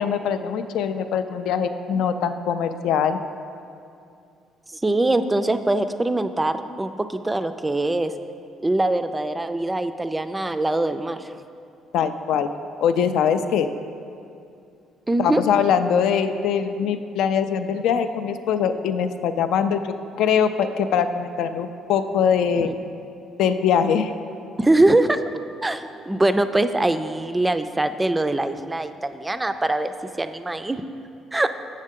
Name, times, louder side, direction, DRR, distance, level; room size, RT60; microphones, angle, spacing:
voice 1, 0.0-3.2 11.9-12.5 12.8-13.7 15.2-22.7 23.4-24.1, left 7 dB, 80° left, 9 dB, 0.3 m, -22 dB
voice 2, 4.7-8.1 8.6-11.3 15.1-15.4 24.6-25.2 25.6-30.8 31.3-31.5, right 2 dB, 15° right, 10 dB, 0.3 m, -22 dB
7.2 x 6.5 x 3.6 m, 2.5 s
cardioid pair, 100°, 0 cm